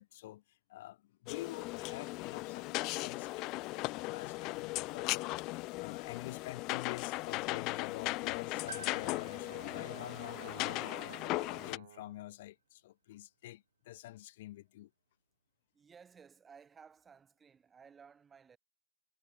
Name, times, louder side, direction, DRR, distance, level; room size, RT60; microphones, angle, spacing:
voice 1, 0.0-14.9, left 15 dB, 50° left, 1.3 m, -48 dB
sound 1, 1.3-11.8, left 22 dB, 35° left, 0.3 m, -38 dB
Brass instrument, 8.1-12.3, right 12 dB, 60° right, 0.3 m, -53 dB
Piano, 8.7-12.6 12.8-12.9 14.1-14.2, right 6 dB, 85° right, 1.8 m, -54 dB
voice 2, 15.7-18.6, right 6 dB, 15° right, 1.6 m, -58 dB
hypercardioid pair, 135°, 0 cm